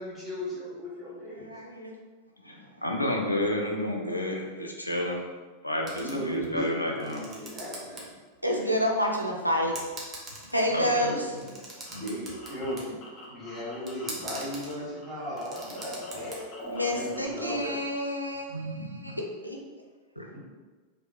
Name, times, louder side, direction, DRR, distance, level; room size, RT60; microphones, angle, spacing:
voice 1, 0.0-1.5 6.0-8.1 11.9-17.7, equal, 5° right, -9 dB, 1.3 m, -36 dB
voice 2, 1.3-1.9 8.4-9.8 10.5-11.4 16.7-19.6, equal, 90° right, 0 dB, 0.4 m, -29 dB
voice 3, 2.4-5.3 5.6-7.2 10.7-11.2 18.5-19.2 20.2-20.3, left 1 dB, 85° left, 0 dB, 0.3 m, -31 dB
sound 1, 5.9-6.6 6.9-8.0 8.4-8.5 9.3-9.4 9.7-10.7 11.3-12.9 13.9-14.7 15.2-16.3, right 2 dB, 20° right, 0.6 m, -42 dB
sound 2, 11.3-14.7 15.0-17.3, left 1 dB, 35° left, 0.6 m, -42 dB
2.9 x 2.1 x 2.4 m, 1.3 s
figure-of-eight pair, 90°, 0 cm